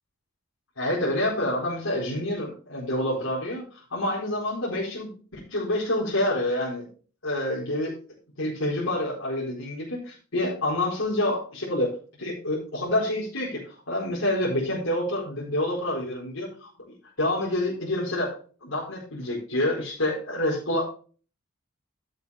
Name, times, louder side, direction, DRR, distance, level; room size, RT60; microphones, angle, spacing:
voice 1, 0.8-6.9 7.2-7.9 8.4-11.9 12.2-16.7 17.2-18.3 18.6-20.9, left 1 dB, 75° left, -6 dB, 4.6 m, -27 dB
12.0 x 8.3 x 3.5 m, 0.38 s
head